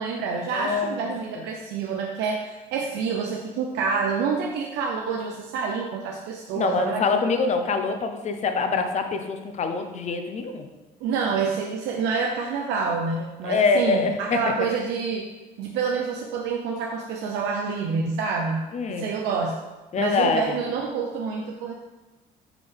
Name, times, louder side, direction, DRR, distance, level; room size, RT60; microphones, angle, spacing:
voice 1, 0.0-7.2 11.0-15.3 15.6-19.6 20.0-21.7, right 5 dB, 85° right, 1 dB, 0.6 m, -27 dB
voice 2, 0.5-1.1 1.4-1.5 6.5-10.6 13.4-14.4 18.7-19.1 19.9-20.6, left 4 dB, 45° left, 7 dB, 0.7 m, -25 dB
8.2 x 3.6 x 3.5 m, 1.1 s
cardioid pair, 110°, 17 cm